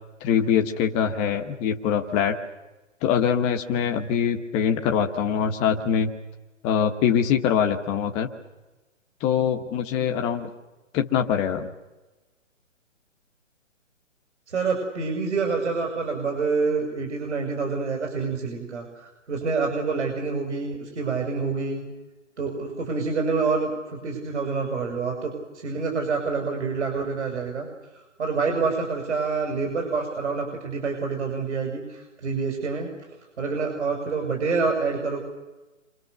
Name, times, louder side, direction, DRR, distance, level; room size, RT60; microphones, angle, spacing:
voice 1, 0.2-2.4 3.0-6.1 6.6-8.3 9.2-10.5 10.9-11.7, left 8 dB, 15° left, 4 dB, 1.3 m, -23 dB
voice 2, 14.5-21.8 22.4-27.7 28.2-32.9 33.4-35.2, right 4 dB, 60° right, 3 dB, 6.8 m, -27 dB
29.5 x 26.5 x 6.8 m, 1.1 s
hypercardioid pair, 150°, 39 cm